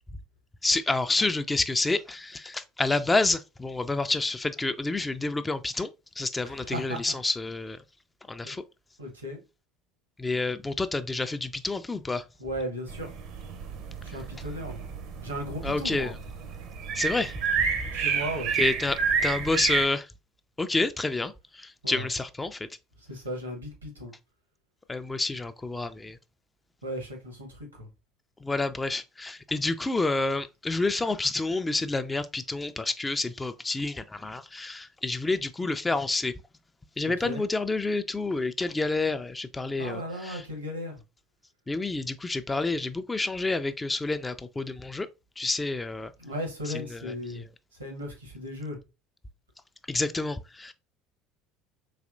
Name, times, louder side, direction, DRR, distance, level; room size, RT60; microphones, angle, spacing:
voice 1, 0.6-5.9 6.2-7.8 8.3-8.6 10.2-12.2 15.6-16.2 16.9-17.7 18.6-20.1 20.6-22.7 24.9-26.2 28.4-36.3 37.0-40.4 41.7-45.1 45.4-46.1 46.7-47.5 49.9-50.7, left 3 dB, 15° left, 0.3 m, -29 dB
voice 2, 6.5-7.1 8.4-8.6 9.0-9.4 12.4-13.1 14.0-14.9 15.2-16.1 17.9-18.5 21.8-22.1 23.0-24.1 26.8-27.9 37.0-37.4 39.8-41.0 46.2-47.4 47.8-48.8, equal, 90° right, 1.1 m, -36 dB
sound 1, 12.9-19.9, right 6 dB, 55° right, 0.6 m, -30 dB
4.1 x 2.9 x 2.5 m
figure-of-eight pair, 65°, 0 cm